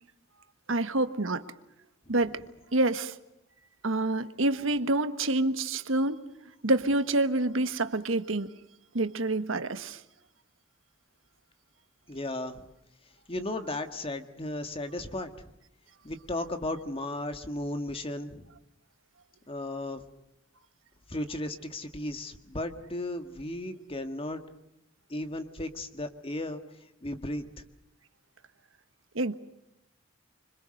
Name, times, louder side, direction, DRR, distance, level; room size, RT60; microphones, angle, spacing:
voice 1, 0.7-1.4 2.1-2.4 2.7-3.1 3.8-6.2 6.6-8.5 8.9-10.0 29.1-29.3, right 2 dB, 80° right, 10 dB, 1.4 m, -27 dB
voice 2, 12.1-12.7 13.3-15.3 16.0-18.4 19.5-20.0 21.1-24.4 25.1-26.6 27.0-27.5, left 1 dB, 30° left, 8 dB, 1.8 m, -35 dB
26.5 x 25.0 x 6.5 m, 0.84 s
head